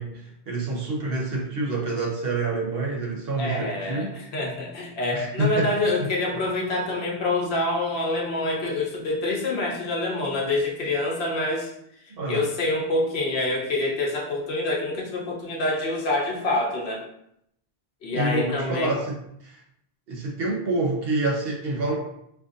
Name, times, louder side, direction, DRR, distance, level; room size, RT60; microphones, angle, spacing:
voice 1, 0.0-4.1 5.1-5.7 12.2-12.4 18.1-19.6 20.1-22.0, right 2 dB, 65° right, -1 dB, 1.1 m, -27 dB
voice 2, 3.4-11.7 12.3-17.0 18.0-18.9, left 2 dB, 75° left, -2 dB, 1.1 m, -26 dB
4.6 x 2.6 x 2.5 m, 0.75 s
omnidirectional pair, 1.1 m